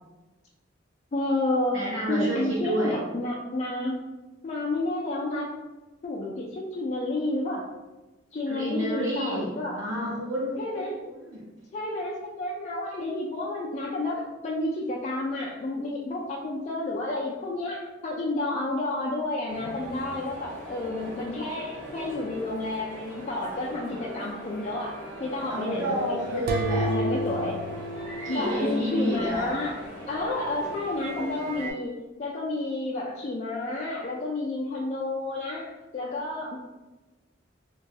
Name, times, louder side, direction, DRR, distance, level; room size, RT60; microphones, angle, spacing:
voice 1, 1.1-1.8 2.1-4.0 4.4-5.5 6.0-7.7 8.3-9.8 10.6-11.0 11.7-26.4 26.8-27.6 28.3-29.8 30.1-36.6, left 2 dB, 35° left, -4 dB, 0.3 m, -30 dB
voice 2, 1.7-3.0 8.5-9.5 9.8-11.4 25.5-26.9 28.2-29.5, equal, 90° right, -6 dB, 0.8 m, -30 dB
sound 1, 19.5-31.7, right 1 dB, 75° right, 1.2 m, -41 dB
sound 2, 26.5-29.2, right 1 dB, 50° right, 0.3 m, -31 dB
3.0 x 2.2 x 2.7 m, 1.2 s
head